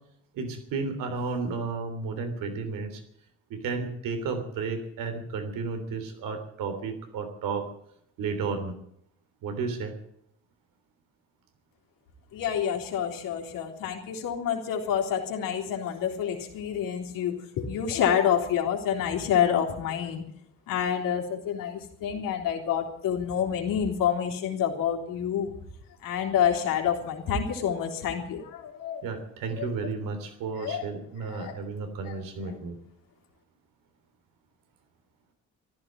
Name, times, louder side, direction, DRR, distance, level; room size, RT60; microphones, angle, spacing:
voice 1, 0.3-3.0 3.5-7.7 8.2-8.7 9.4-9.9 29.0-32.7, right 4 dB, 90° right, 7 dB, 3.4 m, -32 dB
voice 2, 12.3-20.2 20.7-25.5 26.0-29.0 29.5-29.7 30.6-30.8 31.3-31.5 32.0-32.1, left 8 dB, 90° left, 1 dB, 3.6 m, -28 dB
14.5 x 12.5 x 7.6 m, 0.74 s
cardioid pair, 90°, 33 cm